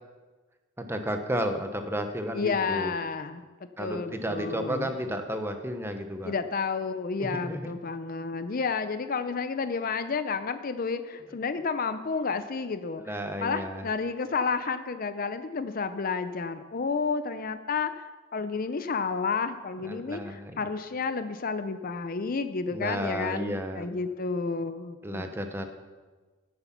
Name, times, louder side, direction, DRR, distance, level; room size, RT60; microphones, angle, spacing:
voice 1, 0.8-2.9 3.8-6.3 7.2-7.7 13.0-13.9 19.8-20.6 22.7-23.9 25.0-25.7, equal, 10° right, 6 dB, 0.9 m, -32 dB
voice 2, 2.3-3.5 3.8-4.9 6.2-25.3, left 4 dB, 45° left, 10 dB, 0.5 m, -31 dB
15.0 x 7.9 x 5.9 m, 1.3 s
head